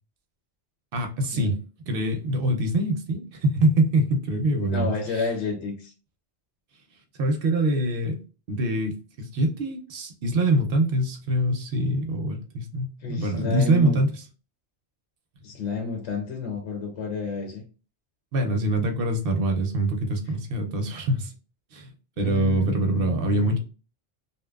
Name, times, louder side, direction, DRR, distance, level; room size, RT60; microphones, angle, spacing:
voice 1, 0.9-1.5 1.9-5.3 7.2-8.2 8.5-14.2 18.3-21.3 21.7-21.9 22.2-23.6, right 1 dB, 65° right, 0.7 m, -24 dB
voice 2, 4.7-5.9 13.0-14.0 15.4-17.6 22.2-23.6, left 4 dB, 85° left, 0.9 m, -31 dB
2.6 x 2.1 x 2.2 m
omnidirectional pair, 1.2 m